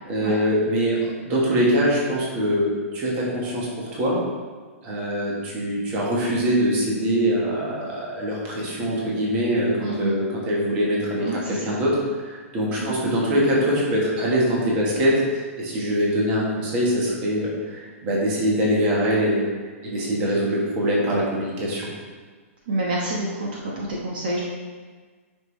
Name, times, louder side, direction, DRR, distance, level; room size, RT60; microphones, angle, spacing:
voice 1, 0.1-4.2 4.8-19.5 19.8-21.9, equal, 15° right, -4 dB, 1.3 m, -23 dB
voice 2, 9.8-10.1 11.2-11.8 12.8-12.9 22.7-23.5 23.8-24.4, right 1 dB, 40° right, -3 dB, 1.1 m, -28 dB
9.1 x 5.5 x 3.2 m, 1.5 s
hypercardioid pair, 180°, 8 cm